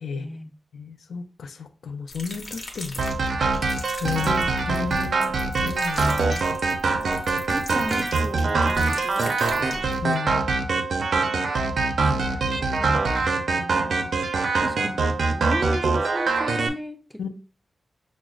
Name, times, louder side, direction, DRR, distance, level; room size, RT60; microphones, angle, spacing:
voice 1, 0.1-0.5 4.1-4.5 7.5-9.9 10.9-11.1 12.3-14.1 14.6-17.2, equal, ahead, 0.3 m, -35 dB
voice 2, 0.7-3.1 4.0-4.3 4.7-5.3 5.6-6.4 10.0-10.4 17.2-17.3, left 6 dB, 80° left, 0.4 m, -32 dB
sound 1, 2.1-10.1, left 2 dB, 50° left, 0.8 m, -39 dB
sound 2, 3.0-16.7, right 3 dB, 65° right, 0.4 m, -24 dB
6.0 x 2.0 x 2.3 m
wide cardioid pair, 150°, 0 cm